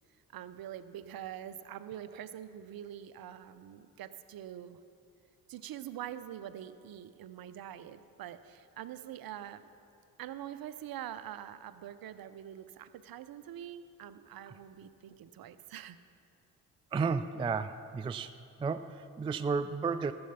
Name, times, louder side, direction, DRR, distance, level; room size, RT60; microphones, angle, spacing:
voice 1, 0.3-4.8 5.5-9.7 10.2-16.0, right 11 dB, 50° right, 13 dB, 0.7 m, -44 dB
voice 2, 16.9-18.3 18.6-20.1, right 5 dB, 15° right, 12 dB, 0.3 m, -32 dB
14.0 x 7.8 x 5.7 m, 2.5 s
hypercardioid pair, 45°, 45 cm